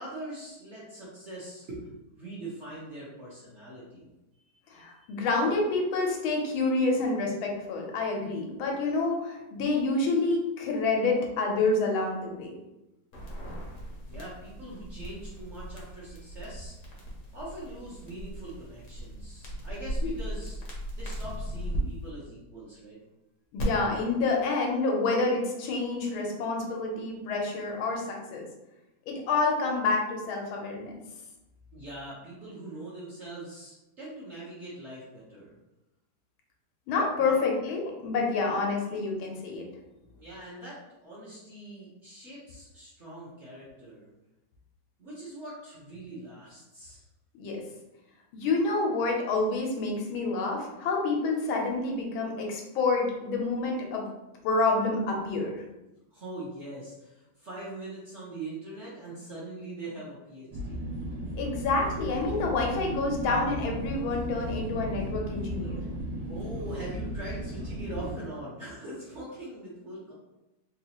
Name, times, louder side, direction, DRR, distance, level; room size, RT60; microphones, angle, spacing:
voice 1, 0.0-4.1 4.3-5.2 14.1-16.8 17.3-20.6 20.9-23.0 31.7-35.6 37.2-37.4 40.2-44.1 45.0-47.0 56.1-60.9 66.3-70.1, right 1 dB, 50° right, -8 dB, 0.9 m, -42 dB
voice 2, 4.7-12.5 20.0-20.1 23.5-28.5 29.1-30.9 36.9-39.6 47.4-47.6 48.3-54.0 54.4-55.6 61.3-65.8, left 3 dB, 90° left, 0 dB, 1.5 m, -28 dB
sound 1, 13.1-21.8 23.6-23.7, equal, 60° left, 0.8 m, -38 dB
sound 2, 60.5-68.1, right 1 dB, 90° right, 1.5 m, -35 dB
4.0 x 2.4 x 2.8 m, 0.97 s
omnidirectional pair, 2.2 m